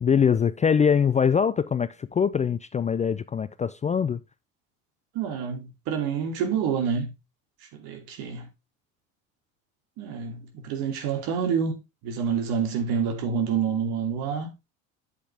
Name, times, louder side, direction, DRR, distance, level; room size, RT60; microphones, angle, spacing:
voice 1, 0.0-4.2, left 7 dB, 20° left, 0.4 m, -23 dB
voice 2, 5.1-7.1 7.8-8.5 10.0-14.5, right 7 dB, 65° right, 2.8 m, -28 dB
8.3 x 8.2 x 3.4 m
hypercardioid pair, 75°, 40 cm